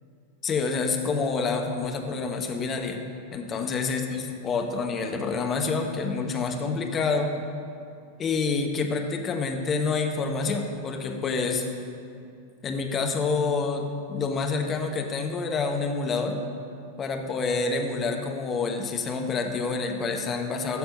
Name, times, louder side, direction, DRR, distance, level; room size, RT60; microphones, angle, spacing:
voice 1, 0.4-3.0 3.3-7.4 8.2-11.6 12.6-16.4 17.0-20.8, left 4 dB, 25° left, 3 dB, 1.2 m, -27 dB
13.0 x 6.8 x 5.4 m, 2.5 s
figure-of-eight pair, 90°, 0 cm